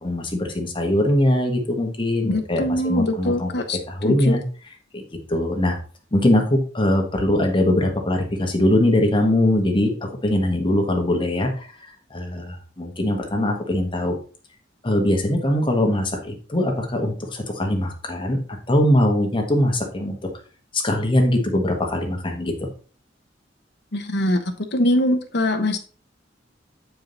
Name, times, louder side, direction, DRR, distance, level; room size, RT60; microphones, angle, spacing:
voice 1, 0.0-3.5 3.9-4.4 4.9-5.0 5.3-5.8 6.1-9.9 10.2-11.7 12.1-14.1 14.8-18.4 18.7-20.2 20.7-22.7, left 1 dB, 25° left, 2 dB, 1.3 m, -21 dB
voice 2, 2.3-3.8 4.0-4.4 23.9-24.4 24.7-25.8, left 1 dB, 65° left, 5 dB, 1.1 m, -22 dB
7.4 x 4.7 x 4.0 m, 0.39 s
head